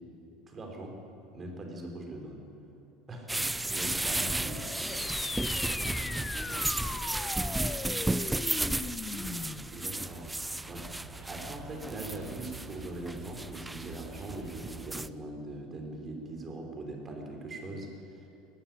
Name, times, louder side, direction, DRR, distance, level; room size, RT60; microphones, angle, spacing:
voice 1, 0.5-1.0 1.3-2.5 3.1-4.6 9.7-10.3 10.6-10.9 11.3-18.3, right 2 dB, 30° right, 2 dB, 4.9 m, -41 dB
sound 1, 3.3-15.1, right 2 dB, 10° right, 0.5 m, -34 dB
voice 2, 4.4-10.1, left 1 dB, 10° left, 0 dB, 2.6 m, -48 dB
sound 2, 4.7-9.7, left 5 dB, 30° left, 1.0 m, -39 dB
sound 3, 9.7-14.9, right 4 dB, 90° right, 3.8 m, -51 dB
18.5 x 14.5 x 9.7 m, 2.8 s
hypercardioid pair, 85°, 0 cm